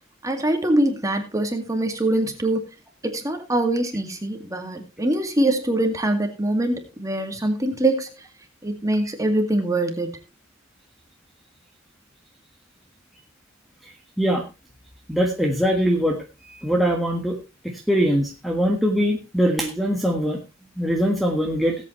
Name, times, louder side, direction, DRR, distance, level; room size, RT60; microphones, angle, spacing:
voice 1, 0.2-2.6 3.0-8.1 8.6-10.2, right 1 dB, 15° right, 5 dB, 2.1 m, -23 dB
voice 2, 15.1-17.4 17.6-20.4 20.8-21.8, equal, ahead, -1 dB, 1.6 m, -22 dB
18.5 x 8.4 x 3.2 m, 0.27 s
head